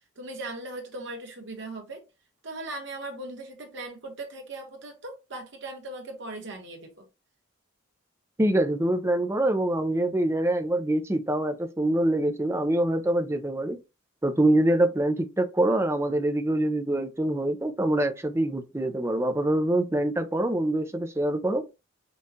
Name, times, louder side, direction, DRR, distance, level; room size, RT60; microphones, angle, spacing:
voice 1, 0.1-2.0 2.4-7.0, right 2 dB, 60° right, 1.2 m, -38 dB
voice 2, 8.4-13.8 14.2-21.6, right 1 dB, 15° right, 0.4 m, -25 dB
5.3 x 2.4 x 2.7 m
head